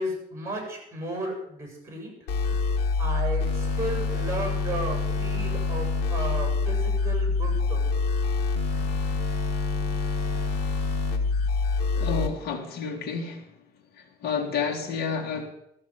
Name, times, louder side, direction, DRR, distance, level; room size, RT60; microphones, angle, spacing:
voice 1, 0.0-2.1 3.0-7.9, right 1 dB, 15° right, 2 dB, 7.5 m, -34 dB
sound 1, 2.3-12.3, left 4 dB, 85° left, 2.1 m, -26 dB
voice 2, 11.9-13.5 13.9-15.5, left 5 dB, 70° left, 1 dB, 2.5 m, -30 dB
13.5 x 7.0 x 9.8 m, 0.75 s
cardioid pair, 110°, 17 cm